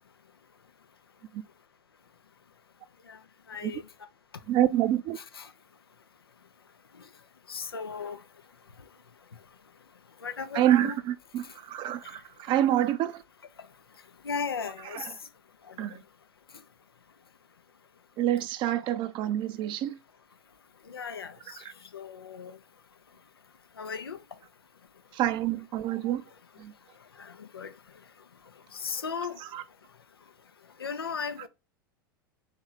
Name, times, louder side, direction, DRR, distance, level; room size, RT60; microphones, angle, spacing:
voice 1, 3.5-3.8 5.2-5.5 7.5-8.2 10.2-11.0 14.2-15.1 15.7-15.8 20.9-21.6 21.9-22.6 23.8-24.2 27.2-27.7 28.7-29.4 30.8-31.5, left 5 dB, 85° left, 0.5 m, -36 dB
voice 2, 4.5-5.2 10.5-13.2 14.9-15.0 15.8-15.9 18.2-20.0 21.6-21.7 25.1-26.2 26.6-26.7 29.5-29.6, right 12 dB, 40° right, 0.5 m, -27 dB
3.6 x 3.1 x 3.9 m
figure-of-eight pair, 85°, 12 cm